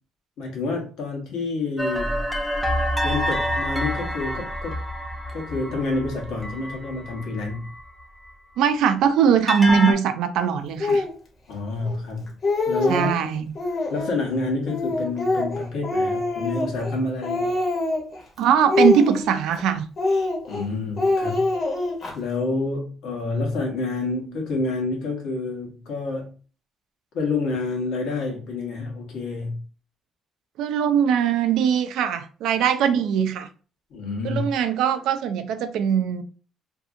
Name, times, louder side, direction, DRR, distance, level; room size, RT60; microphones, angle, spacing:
voice 1, 0.4-2.2 3.0-4.8 5.3-7.7 11.5-12.3 12.7-13.1 13.9-17.6 20.5-21.5 22.1-26.3 27.1-29.6 33.9-34.5, left 3 dB, 75° left, 1.0 m, -28 dB
sound 1, 1.8-8.0 9.5-9.9, equal, 5° left, 0.4 m, -27 dB
voice 2, 8.6-11.0 12.9-13.5 18.4-19.8 30.6-33.5 34.2-36.2, right 8 dB, 80° right, 0.3 m, -21 dB
Speech, 10.8-11.1 11.8-11.9 12.3-13.2 13.5-14.2 14.7-17.0 17.2-18.2 18.7-19.6 20.0-20.6 21.0-22.1, left 2 dB, 40° left, 0.8 m, -24 dB
2.6 x 2.4 x 2.5 m
cardioid pair, 130°, 0 cm